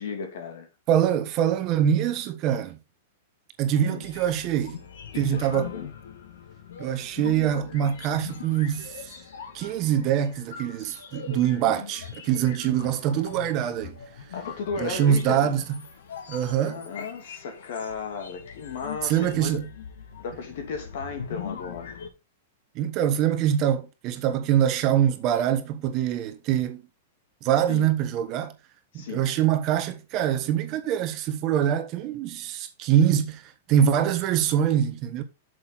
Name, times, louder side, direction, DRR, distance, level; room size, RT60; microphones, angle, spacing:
voice 1, 0.0-0.7 3.8-4.1 5.1-5.9 14.3-15.5 16.6-19.6 20.2-22.0 27.7-27.9 28.9-29.3, left 5 dB, 60° left, 2.6 m, -35 dB
voice 2, 0.9-2.8 3.6-4.8 5.2-5.7 6.8-9.1 9.5-14.0 14.8-15.6 16.3-16.8 19.0-19.6 22.7-26.8 27.4-28.5 28.9-35.2, right 10 dB, 30° right, 1.2 m, -24 dB
sound 1, 4.0-22.1, left 7 dB, 80° left, 2.0 m, -42 dB
8.4 x 6.5 x 4.1 m
supercardioid pair, 160°, 0 cm